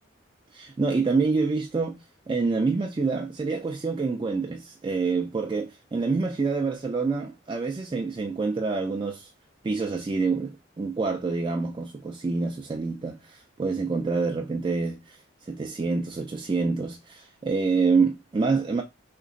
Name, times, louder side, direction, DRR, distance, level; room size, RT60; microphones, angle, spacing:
voice 1, 0.5-2.0 2.3-9.3 9.6-18.8, right 4 dB, 25° right, 0.3 m, -27 dB
3.3 x 2.9 x 2.5 m
head